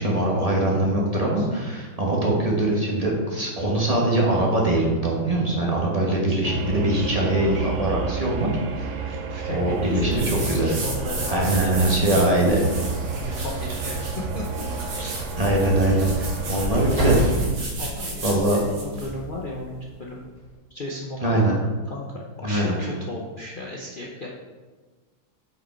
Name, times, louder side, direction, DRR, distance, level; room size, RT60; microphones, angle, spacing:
voice 1, 0.0-8.5 8.8-9.1 9.5-10.7 11.3-12.6 15.4-16.1 16.5-17.3 18.2-18.6 21.2-21.5 22.4-22.8, right 1 dB, 20° right, -3 dB, 1.1 m, -22 dB
voice 2, 0.8-1.5 6.1-7.7 9.0-12.4 13.2-14.7 15.0-15.2 15.9-16.1 17.8-20.2 20.7-21.6 21.8-24.3, left 2 dB, 70° left, -2 dB, 0.4 m, -36 dB
sound 1, 6.4-17.2, right 5 dB, 85° right, 0.6 m, -30 dB
sound 2, 10.1-19.1, right 1 dB, 60° right, 2.4 m, -33 dB
sound 3, 12.6-20.5, right 1 dB, 40° right, 3.0 m, -34 dB
8.8 x 5.0 x 4.5 m, 1.3 s
omnidirectional pair, 2.2 m